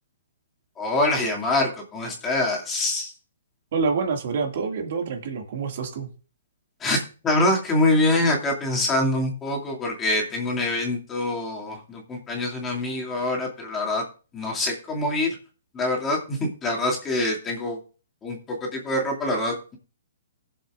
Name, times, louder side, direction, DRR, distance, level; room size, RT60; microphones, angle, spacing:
voice 1, 0.8-3.1 6.8-7.0 7.2-14.0 14.3-15.4 15.7-17.8 18.2-19.8, left 2 dB, 15° left, 2.4 m, -25 dB
voice 2, 3.7-6.1, right 5 dB, 55° right, 2.1 m, -27 dB
20.0 x 7.1 x 2.5 m
hypercardioid pair, 150°, 0 cm